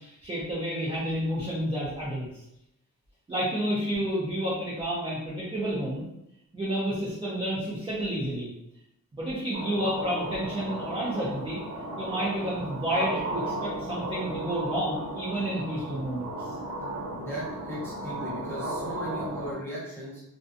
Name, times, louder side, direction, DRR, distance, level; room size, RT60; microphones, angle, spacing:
voice 1, 0.0-2.3 3.3-6.1 6.5-8.5 9.1-11.6 12.0-16.5, equal, 15° right, -7 dB, 0.5 m, -30 dB
sound 1, 9.5-19.5, right 1 dB, 65° right, 1.1 m, -35 dB
voice 2, 17.2-20.2, equal, 5° left, -8 dB, 0.8 m, -37 dB
2.5 x 2.2 x 2.5 m, 0.83 s
wide cardioid pair, 155°, 34 cm